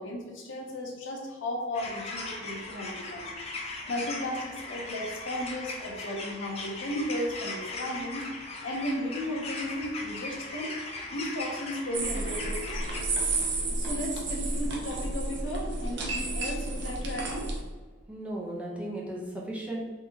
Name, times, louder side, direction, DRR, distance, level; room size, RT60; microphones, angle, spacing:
voice 1, 0.0-3.3 3.9-8.3 8.6-10.7 11.1-13.1 13.8-17.5, left 1 dB, 85° left, -1 dB, 0.8 m, -35 dB
sound 1, 1.7-13.0, left 2 dB, 35° left, 0.5 m, -39 dB
sound 2, 11.9-17.6, right 2 dB, 65° right, 0.6 m, -31 dB
voice 2, 18.1-19.9, right 1 dB, 5° right, -4 dB, 0.7 m, -36 dB
3.8 x 2.8 x 2.8 m, 1.4 s
head